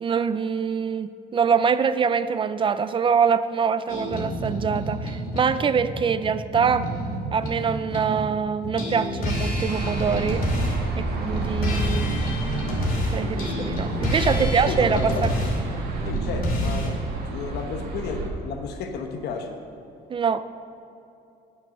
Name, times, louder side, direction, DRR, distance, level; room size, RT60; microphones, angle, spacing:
voice 1, 0.0-6.9 7.3-10.5 11.0-12.2 13.1-15.3 20.1-20.4, right 6 dB, 30° right, 13 dB, 0.3 m, -24 dB
sound 1, 3.9-8.3 8.6-16.9, equal, 60° left, 2.5 m, -28 dB
sound 2, 9.7-18.3, right 3 dB, 70° right, 1.6 m, -30 dB
voice 2, 14.2-15.3 16.1-17.0 17.2-19.6, left 4 dB, 75° left, 5 dB, 1.2 m, -32 dB
9.2 x 7.1 x 6.4 m, 2.8 s
cardioid pair, 110°, 17 cm